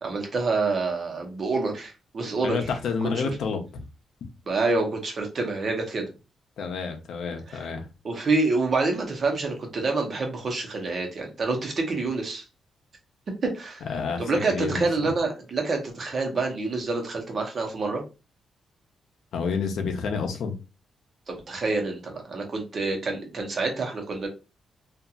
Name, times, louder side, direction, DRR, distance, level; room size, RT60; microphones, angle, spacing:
voice 1, 0.0-2.6 3.0-3.1 4.5-6.1 8.0-12.4 13.4-13.8 14.2-18.0 21.3-24.3, right 3 dB, 45° right, 2 dB, 0.9 m, -27 dB
voice 2, 2.4-3.8 4.2-4.3 6.6-7.8 13.9-15.1 19.3-20.5, left 5 dB, 80° left, 4 dB, 0.7 m, -29 dB
2.8 x 2.4 x 2.4 m, 0.29 s
cardioid pair, 125°, 0 cm